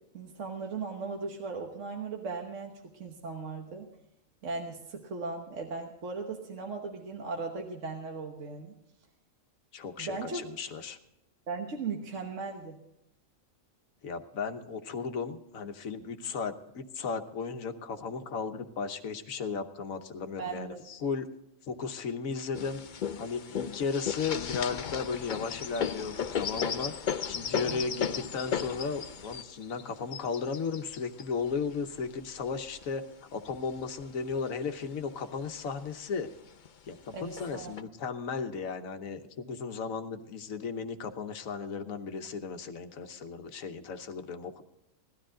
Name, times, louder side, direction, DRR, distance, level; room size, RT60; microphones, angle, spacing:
voice 1, 0.1-3.9 4.4-8.7 10.0-10.5 11.5-12.8 20.4-20.8 27.6-27.9 37.1-37.7, right 4 dB, 65° right, 2 dB, 1.6 m, -37 dB
voice 2, 9.7-11.0 14.0-21.3 21.7-22.8 23.2-26.9 27.2-33.0 33.3-36.3 36.9-44.6, left 5 dB, 80° left, 7 dB, 1.4 m, -35 dB
sound 1, 22.5-32.8 33.5-34.4 34.8-34.9 35.2-35.9 36.7-36.8 37.4-37.8, left 7 dB, 50° left, 0.5 m, -35 dB
17.5 x 12.5 x 3.8 m, 0.83 s
omnidirectional pair, 1.4 m